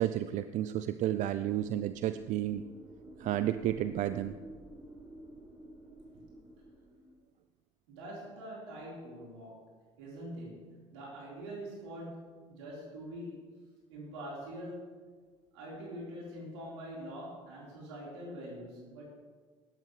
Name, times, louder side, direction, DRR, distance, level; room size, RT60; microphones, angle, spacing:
voice 1, 0.0-2.6 3.2-4.3, right 12 dB, 60° right, 12 dB, 0.5 m, -31 dB
sound 1, 1.3-7.2, right 1 dB, 35° right, 2.5 m, -51 dB
voice 2, 7.9-9.7 10.0-13.5 13.9-14.9 15.5-19.2, equal, 85° right, -4 dB, 4.4 m, -44 dB
17.0 x 12.0 x 3.3 m, 1.5 s
hypercardioid pair, 60°, 15 cm